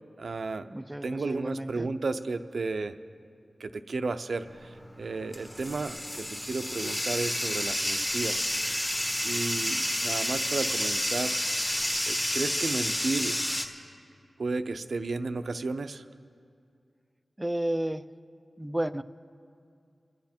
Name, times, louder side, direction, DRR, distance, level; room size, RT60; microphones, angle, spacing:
voice 1, 0.2-0.7 1.0-3.0 3.6-4.7 5.0-8.5 9.2-11.4 12.1-13.4 14.4-16.0, right 3 dB, 65° right, 10 dB, 0.6 m, -33 dB
voice 2, 0.7-1.9 17.4-18.0 18.6-19.0, right 1 dB, 15° right, 13 dB, 0.4 m, -32 dB
Bathtub (filling or washing), 4.5-13.7, left 1 dB, 15° left, 1.3 m, -30 dB
26.0 x 9.5 x 4.4 m, 2.3 s
wide cardioid pair, 85°, 0 cm